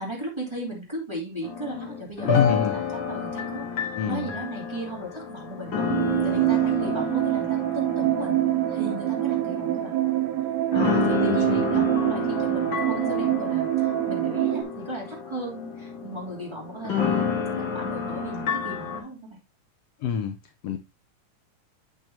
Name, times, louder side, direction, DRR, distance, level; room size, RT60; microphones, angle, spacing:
voice 1, 0.0-5.9 6.2-8.4 8.7-10.0 10.7-19.4, right 1 dB, 10° right, 2.5 m, -36 dB
sound 1, 1.4-10.3 10.7-19.0, left 6 dB, 45° left, 2.0 m, -30 dB
voice 2, 2.3-2.8 3.9-4.3 11.3-11.9 20.0-20.4 20.6-20.8, left 7 dB, 90° left, 1.3 m, -26 dB
sound 2, 5.9-14.6, right 15 dB, 65° right, 1.8 m, -25 dB
8.1 x 7.5 x 2.8 m
omnidirectional pair, 3.7 m